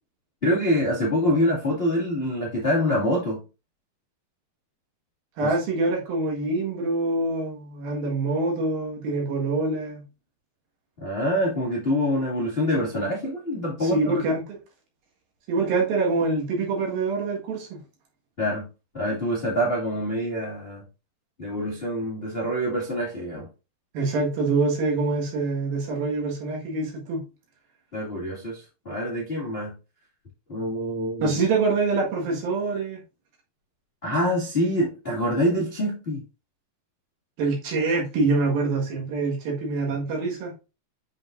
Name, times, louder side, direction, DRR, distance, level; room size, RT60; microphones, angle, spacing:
voice 1, 0.4-3.4 5.4-5.5 11.0-14.1 18.4-18.7 18.9-20.8 21.4-23.5 27.9-29.7 30.5-31.4 34.0-36.2, equal, 40° left, 0.8 m, -25 dB
voice 2, 5.4-10.0 13.8-14.6 15.5-17.8 23.9-27.2 31.2-33.0 37.4-40.5, right 3 dB, 65° right, 3.3 m, -25 dB
7.7 x 5.2 x 2.5 m
omnidirectional pair, 4.8 m